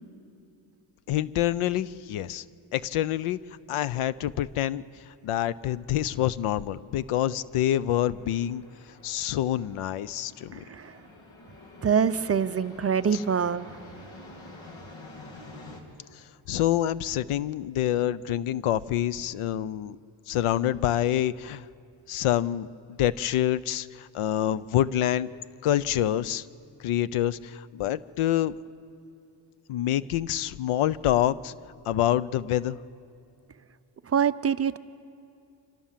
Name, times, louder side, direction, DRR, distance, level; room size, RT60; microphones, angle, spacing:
voice 1, 1.1-2.4 2.7-3.4 3.7-4.8 5.2-8.6 9.0-10.6 13.1-13.2 16.1-20.0 20.3-21.6 22.1-22.7 23.0-25.3 25.6-26.5 26.8-28.5 29.7-31.5 31.9-32.8, left 12 dB, 80° left, 18 dB, 0.7 m, -26 dB
sound 1, 5.2-15.8, left 2 dB, 65° left, 3.2 m, -49 dB
voice 2, 11.8-13.8 34.1-34.8, right 7 dB, 30° right, 12 dB, 0.5 m, -25 dB
28.0 x 26.0 x 7.5 m, 2.7 s
cardioid pair, 130°, 50 cm